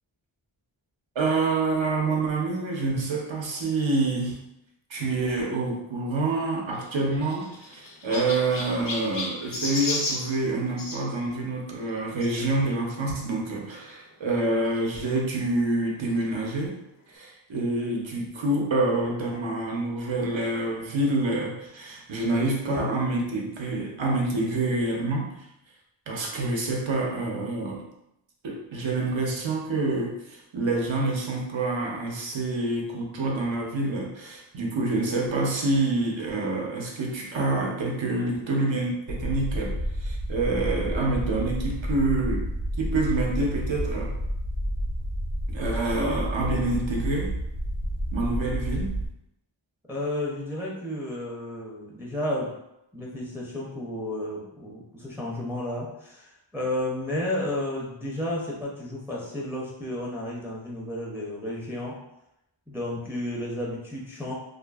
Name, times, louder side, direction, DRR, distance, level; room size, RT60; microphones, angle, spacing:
voice 1, 1.2-4.4 4.9-16.8 17.1-25.3 26.1-27.8 28.4-42.5 42.8-44.2 45.5-47.3 48.1-48.9, right 2 dB, 70° right, 0 dB, 0.7 m, -27 dB
Chirp tweet, 6.7-11.0 12.2-12.4 13.1-13.2 13.4-13.5 14.8-14.9, left 2 dB, 45° left, 0.5 m, -33 dB
sound 1, 39.1-49.1, equal, 80° left, 1.0 m, -30 dB
voice 2, 49.9-52.5 52.9-62.0 62.7-64.3, left 1 dB, 5° right, -4 dB, 0.5 m, -32 dB
2.5 x 2.5 x 2.3 m, 0.84 s
wide cardioid pair, 55°, 48 cm